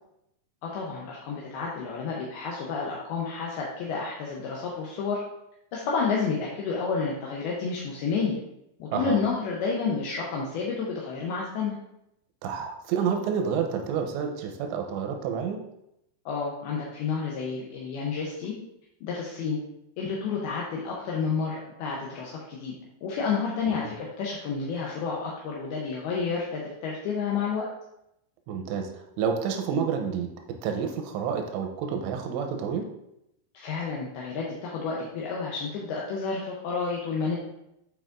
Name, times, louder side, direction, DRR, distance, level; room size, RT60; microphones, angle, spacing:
voice 1, 0.6-5.2 5.7-8.4 8.8-11.8 16.3-18.5 19.0-19.6 20.0-22.7 23.0-27.7 33.5-37.4, left 5 dB, 80° left, -3 dB, 2.3 m, -30 dB
voice 2, 12.4-15.6 23.8-23.9 28.5-30.3 30.6-32.9, right 7 dB, 80° right, 4 dB, 2.8 m, -29 dB
9.2 x 4.7 x 2.5 m, 0.82 s
omnidirectional pair, 5.3 m